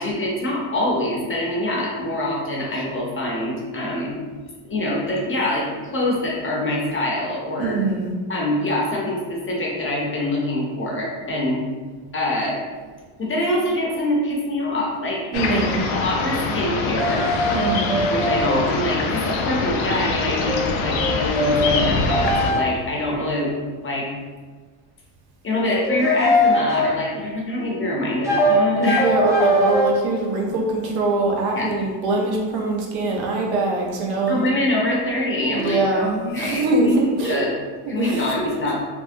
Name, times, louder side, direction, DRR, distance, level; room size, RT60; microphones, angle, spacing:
voice 1, 0.0-4.2 4.6-7.8 8.3-11.6 12.1-12.6 13.2-15.2 15.5-15.6 15.9-17.3 18.1-23.5 23.8-24.1 25.4-29.0 31.6-31.7 34.3-36.9 37.2-37.5 37.9-38.8, left 1 dB, 25° left, -3 dB, 0.7 m, -24 dB
voice 2, 7.6-8.1 15.3-15.8 17.5-18.0 28.8-34.4 35.5-37.5 37.9-38.7, right 2 dB, 70° right, -1 dB, 0.8 m, -23 dB
sound 1, 15.3-22.5, left 3 dB, 90° left, 0.5 m, -24 dB
sound 2, 17.0-18.6 20.2-22.6 25.6-26.9 28.2-29.9, left 1 dB, 5° right, 0.4 m, -21 dB
3.4 x 2.1 x 2.6 m, 1.4 s
cardioid pair, 100°, 50 cm